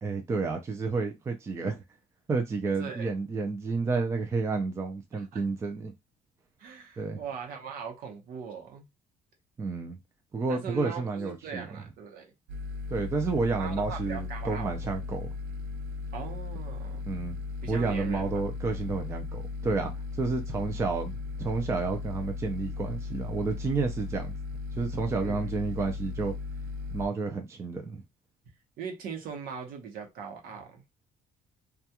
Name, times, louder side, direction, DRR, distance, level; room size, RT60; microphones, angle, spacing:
voice 1, 0.0-1.8 2.3-5.9 7.0-7.2 9.6-10.0 10.3-11.6 12.9-15.3 17.1-17.4 17.7-21.1 21.4-24.3 24.7-26.3 26.9-28.0, right 4 dB, 15° right, 0.4 m, -30 dB
voice 2, 2.8-3.1 5.1-5.4 6.6-8.9 10.5-12.3 13.6-14.7 16.1-17.0 17.6-18.4 25.2-25.5 28.8-30.8, right 6 dB, 65° right, 0.8 m, -40 dB
sound 1, 12.5-27.1, left 4 dB, 80° right, 0.4 m, -36 dB
2.3 x 2.2 x 2.8 m
cardioid pair, 175°, 16 cm